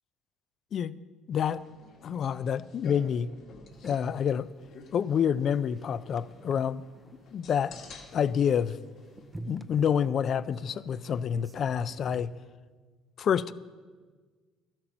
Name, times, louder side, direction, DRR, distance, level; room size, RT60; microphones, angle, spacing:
sound 1, 1.3-9.7, left 4 dB, 65° left, 1.9 m, -52 dB
voice 1, 1.3-1.6 2.0-3.4 3.8-4.5 4.9-6.8 7.3-7.8 8.1-8.8 9.4-12.4 13.2-13.5, left 8 dB, 50° left, 17 dB, 0.4 m, -28 dB
sound 2, 3.7-12.2, right 2 dB, 15° right, 0.5 m, -49 dB
12.5 x 8.9 x 5.9 m, 1.4 s
cardioid pair, 100°, 0 cm